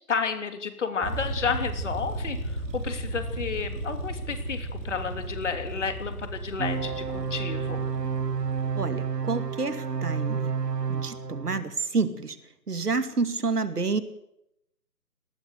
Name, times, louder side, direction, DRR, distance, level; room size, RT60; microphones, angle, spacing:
voice 1, 0.0-7.9, left 5 dB, 50° left, 7 dB, 3.1 m, -31 dB
sound 1, 1.0-9.1, right 1 dB, 10° right, 8.0 m, -35 dB
sound 2, 6.6-11.6, right 6 dB, 90° right, 1.1 m, -30 dB
voice 2, 8.7-10.5 10.9-12.4 12.7-14.0, right 4 dB, 75° right, 10 dB, 2.6 m, -29 dB
19.5 x 18.5 x 8.1 m, 0.81 s
figure-of-eight pair, 150°, 47 cm